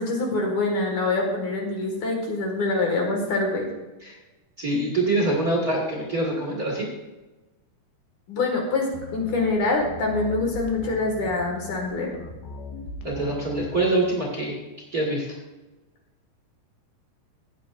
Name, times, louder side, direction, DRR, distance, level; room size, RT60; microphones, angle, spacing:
voice 1, 0.0-3.7 8.3-12.2, left 3 dB, 55° left, 1 dB, 2.9 m, -25 dB
voice 2, 4.6-6.9 13.0-14.6 14.9-15.3, right 2 dB, 45° right, -3 dB, 1.1 m, -24 dB
sound 1, 8.9-14.0, left 3 dB, 80° left, 3.0 m, -39 dB
15.5 x 9.3 x 2.5 m, 1.1 s
omnidirectional pair, 4.5 m